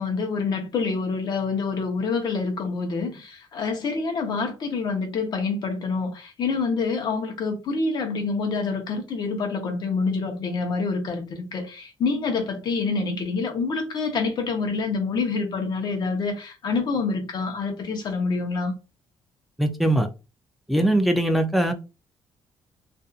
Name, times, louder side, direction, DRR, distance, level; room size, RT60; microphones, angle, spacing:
voice 1, 0.0-18.7, left 4 dB, 50° left, 0.9 m, -27 dB
voice 2, 19.6-20.1 20.7-21.7, right 1 dB, ahead, 0.4 m, -21 dB
2.6 x 2.6 x 2.4 m
cardioid pair, 140°, 9 cm